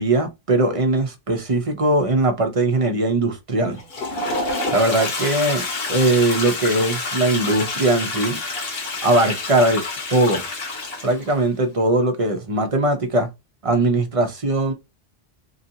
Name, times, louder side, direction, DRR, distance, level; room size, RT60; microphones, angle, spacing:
voice 1, 0.0-3.8 4.7-5.6 5.9-8.4 9.0-9.8 10.1-10.4 11.0-13.3 13.6-14.7, right 2 dB, 40° right, 0.6 m, -20 dB
Toilet flush, 3.7-11.4, left 3 dB, 70° left, 1.2 m, -28 dB
2.9 x 2.6 x 2.7 m
omnidirectional pair, 1.0 m